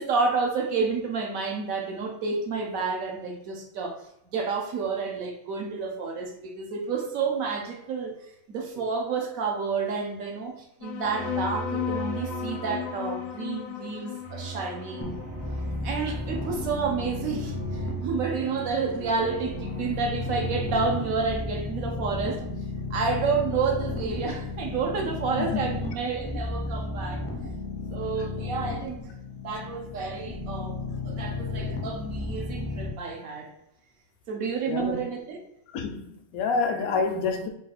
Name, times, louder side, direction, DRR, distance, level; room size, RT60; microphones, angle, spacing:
voice 1, 0.0-4.0 4.3-15.2 15.8-22.5 22.9-27.2 27.9-29.0 29.4-30.8 31.0-33.5 34.3-35.4, right 5 dB, 75° right, 1.2 m, -30 dB
sound 1, 10.8-17.8, left 11 dB, 60° left, 0.6 m, -36 dB
sound 2, 11.0-21.6, right 5 dB, 55° right, 0.5 m, -39 dB
sound 3, 15.0-32.9, left 3 dB, 15° left, 0.4 m, -34 dB
voice 2, 25.4-25.8 26.3-26.4 34.7-35.0 35.7-37.5, left 4 dB, 85° left, 1.0 m, -28 dB
4.0 x 2.4 x 4.1 m
omnidirectional pair, 1.5 m